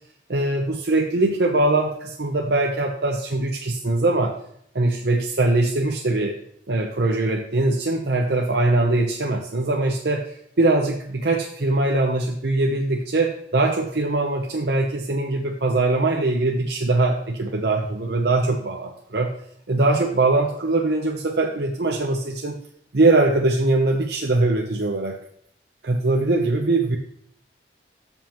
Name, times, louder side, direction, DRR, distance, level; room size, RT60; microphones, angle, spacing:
voice 1, 0.3-4.3 4.7-6.4 6.7-19.3 19.7-22.6 22.9-25.2 25.8-27.0, right 2 dB, 65° right, 1 dB, 0.8 m, -22 dB
14.5 x 5.5 x 3.0 m, 0.68 s
head